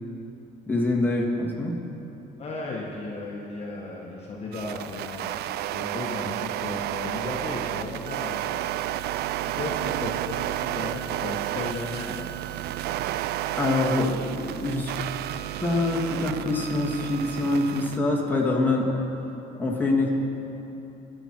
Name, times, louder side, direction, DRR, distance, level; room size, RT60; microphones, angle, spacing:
voice 1, 0.7-1.7 13.6-15.0 15.6-19.0 19.5-20.1, left 2 dB, 10° left, -3 dB, 2.4 m, -25 dB
voice 2, 2.4-5.3 5.7-9.0 9.5-12.4, left 2 dB, 35° left, -3 dB, 1.6 m, -35 dB
sound 1, 4.5-18.0, right 13 dB, 70° right, 0.4 m, -31 dB
22.0 x 8.1 x 4.6 m, 2.9 s
cardioid pair, 110°, 17 cm